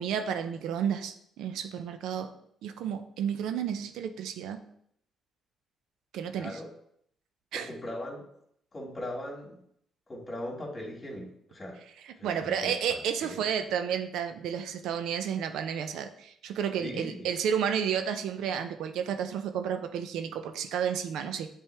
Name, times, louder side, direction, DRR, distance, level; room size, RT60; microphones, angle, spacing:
voice 1, 0.0-2.3 2.6-4.6 6.1-6.6 7.5-7.7 12.0-21.5, right 8 dB, 85° right, 8 dB, 0.5 m, -31 dB
voice 2, 6.3-6.7 7.5-8.2 8.7-9.6 10.1-11.8 12.2-13.4 16.8-17.3, left 1 dB, 25° left, -1 dB, 2.2 m, -39 dB
8.1 x 3.5 x 3.4 m, 0.69 s
cardioid pair, 90°, 0 cm